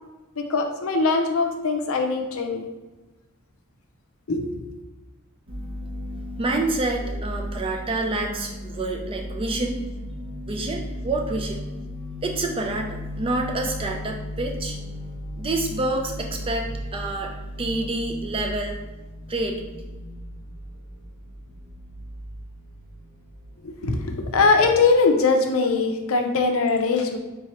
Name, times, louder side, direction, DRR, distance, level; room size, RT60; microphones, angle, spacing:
voice 1, 0.4-2.6 4.3-4.5 23.6-27.2, left 4 dB, 65° left, 4 dB, 0.5 m, -21 dB
sound 1, 5.5-24.8, equal, 55° right, 0.7 m, -36 dB
voice 2, 6.4-9.8 10.5-11.7 12.2-14.8 15.4-17.3 17.6-18.8 19.3-19.6, right 2 dB, 25° right, 2 dB, 0.4 m, -28 dB
3.7 x 3.1 x 2.9 m, 1.2 s
head